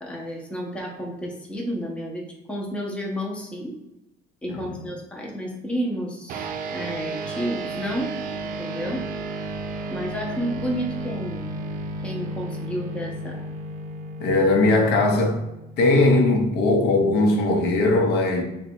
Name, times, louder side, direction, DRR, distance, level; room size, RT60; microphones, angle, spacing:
voice 1, 0.0-3.7 4.4-8.1 8.4-9.0 9.9-11.5 12.0-13.5, equal, 5° left, 0.6 m, -31 dB
voice 2, 4.5-4.8 14.2-15.4 15.8-18.4, left 2 dB, 75° left, 0.7 m, -19 dB
sound 1, 6.3-16.0, right 2 dB, 55° right, 0.4 m, -33 dB
3.9 x 2.3 x 4.3 m
cardioid pair, 170°, 18 cm